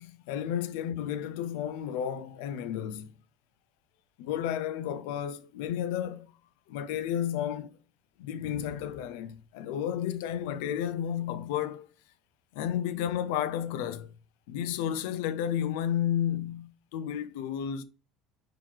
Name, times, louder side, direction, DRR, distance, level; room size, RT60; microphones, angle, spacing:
voice 1, 0.0-3.1 4.2-6.3 6.7-7.7 8.2-11.9 12.5-14.1 14.5-17.8, left 10 dB, 90° left, 0.4 m, -32 dB
3.7 x 3.0 x 4.5 m
cardioid pair, 150°, 0 cm